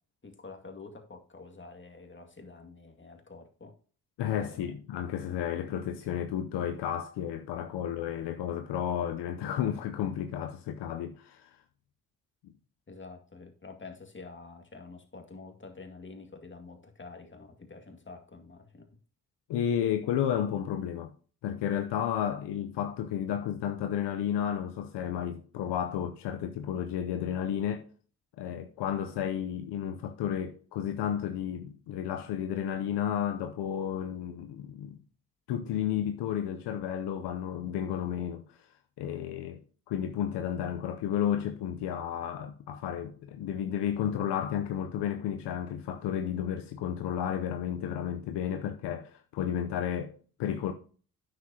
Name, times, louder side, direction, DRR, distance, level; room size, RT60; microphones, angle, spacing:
voice 1, 0.2-3.8 4.4-4.7 12.9-18.9, left 3 dB, 30° left, 2.2 m, -48 dB
voice 2, 4.2-11.6 12.4-12.5 19.5-21.1 21.4-27.9 28.4-35.0 35.5-38.6 39.0-39.6 39.9-50.7, left 9 dB, 75° left, 0.8 m, -32 dB
9.3 x 6.9 x 2.8 m
hypercardioid pair, 40°, 42 cm